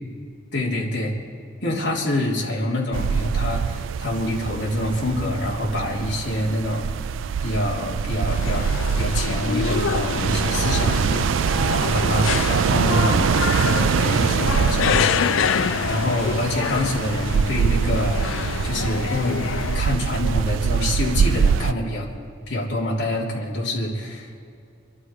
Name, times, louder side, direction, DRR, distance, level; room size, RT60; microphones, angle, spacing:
voice 1, 0.5-1.1 1.6-7.1 7.4-8.7 9.0-11.1 11.7-19.4 19.7-22.1 22.5-24.4, left 1 dB, 65° left, -4 dB, 3.3 m, -26 dB
sound 1, 2.9-21.7, right 7 dB, 80° right, 0.3 m, -24 dB
sound 2, 8.3-19.8, left 7 dB, 85° left, 0.4 m, -26 dB
26.0 x 11.0 x 4.8 m, 2.4 s
head